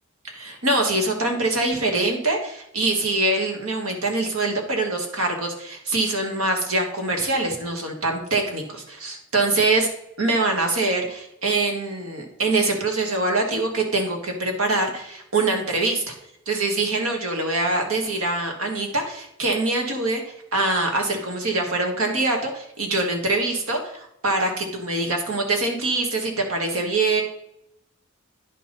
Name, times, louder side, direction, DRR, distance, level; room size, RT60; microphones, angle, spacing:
voice 1, 0.2-9.9 10.2-16.1 16.4-27.2, right 2 dB, 90° right, 3 dB, 1.7 m, -24 dB
10.0 x 5.4 x 4.0 m, 0.78 s
head